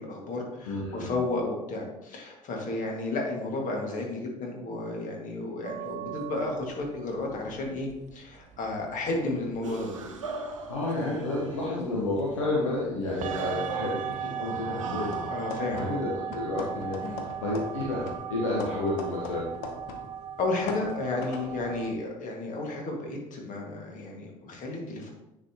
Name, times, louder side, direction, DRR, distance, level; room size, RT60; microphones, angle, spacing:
voice 1, 0.0-10.1 15.3-16.0 17.0-17.2 20.4-25.1, left 2 dB, 55° left, 0 dB, 1.9 m, -32 dB
voice 2, 0.6-1.1 10.7-15.3 15.7-17.0 17.4-19.5, left 2 dB, 85° left, -4 dB, 1.0 m, -30 dB
sound 1, 5.6-21.9, right 8 dB, 50° right, 0.6 m, -39 dB
sound 2, 9.6-12.1 13.0-16.4 16.9-17.2 18.0-18.3, right 3 dB, 85° right, 0.7 m, -41 dB
sound 3, 15.1-16.1 16.3-20.1 20.4-21.6, left 4 dB, 70° left, 0.8 m, -40 dB
9.7 x 4.4 x 2.9 m, 0.90 s
figure-of-eight pair, 50°, 16 cm